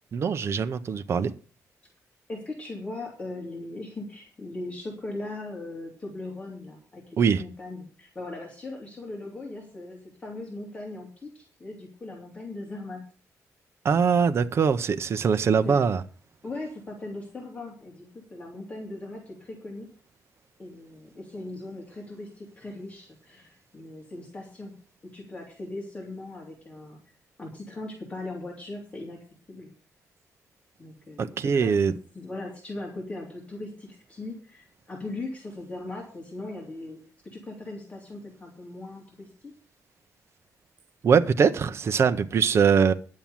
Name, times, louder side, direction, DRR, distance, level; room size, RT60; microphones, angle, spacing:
voice 1, 0.1-1.3 7.2-7.4 13.8-16.0 31.2-31.9 41.0-42.9, right 6 dB, 45° right, 0.6 m, -22 dB
voice 2, 2.3-13.0 15.6-15.8 16.4-19.9 20.6-24.8 25.0-27.0 27.4-29.7 30.8-39.5, left 2 dB, 20° left, 3.1 m, -39 dB
10.5 x 7.2 x 7.1 m
wide cardioid pair, 150°, 6 cm